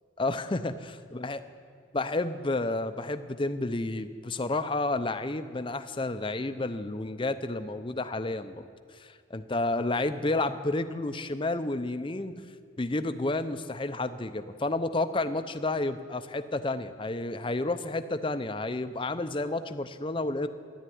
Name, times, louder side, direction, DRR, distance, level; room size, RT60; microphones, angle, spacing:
voice 1, 0.2-1.4 1.9-8.7 9.0-12.4 12.8-20.5, left 2 dB, 25° left, 10 dB, 0.6 m, -31 dB
13.0 x 11.5 x 9.2 m, 2.1 s
head